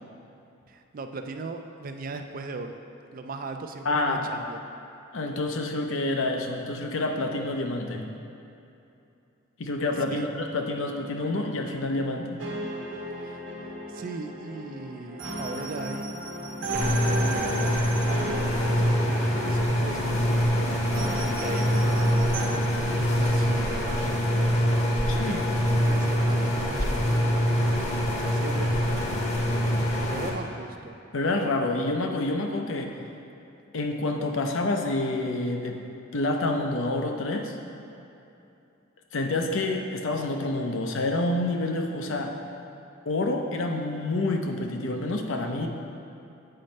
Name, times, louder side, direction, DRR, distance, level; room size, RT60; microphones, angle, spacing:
voice 1, 0.7-2.8 3.1-4.6 10.1-10.3 13.2-13.5 13.9-16.1 16.7-17.7 18.5-21.0 21.2-22.3 22.9-24.6 25.2-29.0 30.0-30.9, right 3 dB, 45° right, 6 dB, 0.4 m, -39 dB
voice 2, 3.8-4.2 5.1-8.1 9.6-12.4 25.1-25.5 31.1-33.0 33.7-35.8 36.1-37.6 39.1-42.3 43.1-45.7, left 2 dB, 70° left, 3 dB, 0.7 m, -28 dB
sound 1, 12.4-22.5, right 1 dB, 70° right, 1.1 m, -35 dB
sound 2, 16.7-30.3, equal, 35° left, 0.9 m, -24 dB
7.7 x 4.3 x 5.2 m, 2.8 s
head